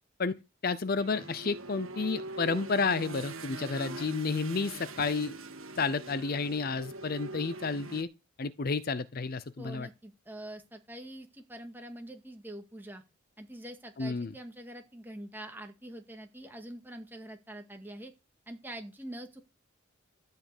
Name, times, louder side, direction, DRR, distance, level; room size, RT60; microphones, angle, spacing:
voice 1, 0.6-5.4 5.8-8.1 8.4-9.9 14.0-14.3, left 4 dB, 45° left, 0.6 m, -31 dB
sound 1, 1.0-8.0, right 2 dB, 75° right, 1.7 m, -42 dB
voice 2, 9.6-13.0 13.4-18.1 18.5-19.4, right 1 dB, 10° right, 2.0 m, -45 dB
13.5 x 5.7 x 8.3 m
head